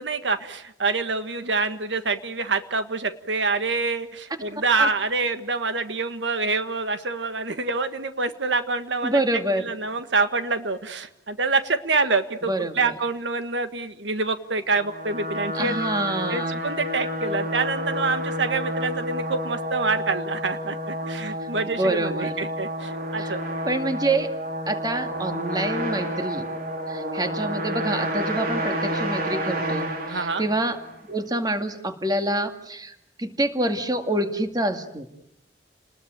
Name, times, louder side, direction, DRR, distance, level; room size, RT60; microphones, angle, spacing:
voice 1, 0.0-15.9 16.3-23.4 30.1-30.4, right 4 dB, 85° right, 9 dB, 1.6 m, -26 dB
voice 2, 9.0-9.6 12.5-12.9 15.5-16.7 21.7-22.3 23.2-23.3 23.6-24.3 24.7-26.4 26.9-30.8 31.1-35.2, right 1 dB, 20° right, 7 dB, 2.2 m, -27 dB
sound 1, 14.7-31.0, equal, 60° right, 4.4 m, -30 dB
29.5 x 20.0 x 9.2 m, 0.77 s
head